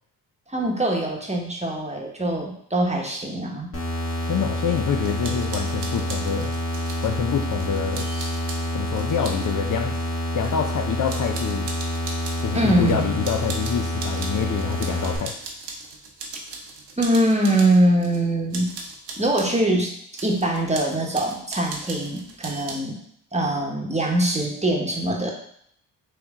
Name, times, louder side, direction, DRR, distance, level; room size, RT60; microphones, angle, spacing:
voice 1, 0.5-3.7 12.5-13.2 17.0-18.7 19.2-23.0 23.3-25.3, right 1 dB, 15° right, -1 dB, 1.1 m, -23 dB
sound 1, 3.7-15.2, equal, 30° left, 1.6 m, -27 dB
voice 2, 4.2-6.5 7.0-8.4 8.7-9.9 10.3-11.7 12.4-15.3, left 7 dB, 45° left, 3 dB, 0.5 m, -26 dB
sound 2, 5.0-7.1 7.6-9.5 9.9-10.8 11.1-12.5 12.9-18.2 18.5-19.6 20.1-22.8, right 3 dB, 65° right, 0.9 m, -38 dB
3.4 x 3.1 x 3.6 m, 0.68 s
supercardioid pair, 40°, 45 cm